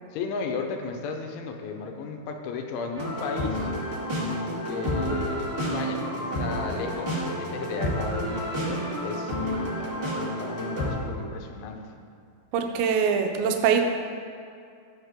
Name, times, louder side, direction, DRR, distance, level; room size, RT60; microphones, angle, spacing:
voice 1, 0.1-3.7 4.7-9.4 9.8-11.9, left 4 dB, 90° left, 4 dB, 3.3 m, -34 dB
sound 1, 2.9-10.9, equal, 20° right, 1.5 m, -30 dB
voice 2, 12.5-13.8, right 7 dB, 80° right, 4 dB, 3.0 m, -23 dB
14.0 x 8.9 x 3.7 m, 2.4 s
omnidirectional pair, 5.2 m